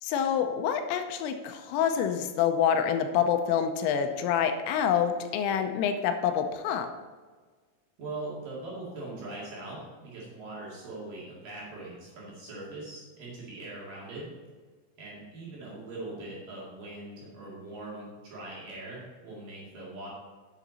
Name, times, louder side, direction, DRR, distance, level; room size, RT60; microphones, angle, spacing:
voice 1, 0.0-6.9, left 8 dB, 85° left, 7 dB, 3.1 m, -27 dB
voice 2, 8.0-14.3 15.0-20.1, right 2 dB, 50° right, -6 dB, 3.2 m, -41 dB
10.0 x 8.0 x 4.0 m, 1.4 s
omnidirectional pair, 5.9 m